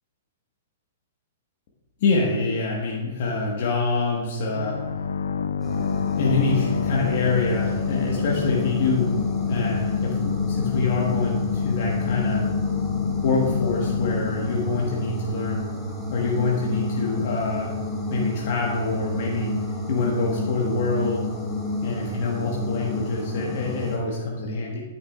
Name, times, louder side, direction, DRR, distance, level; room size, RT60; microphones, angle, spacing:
voice 1, 2.0-4.8 6.2-9.1 9.5-12.4 13.2-15.7 16.1-17.8 18.1-19.5 19.9-21.3 21.8-24.8, left 3 dB, 55° left, -2 dB, 1.4 m, -25 dB
sound 1, 4.5-16.0, left 6 dB, 70° left, 0.3 m, -27 dB
sound 2, 5.6-24.0, left 2 dB, 10° left, 1.9 m, -31 dB
9.8 x 8.8 x 2.4 m, 1.3 s
figure-of-eight pair, 115°, 0 cm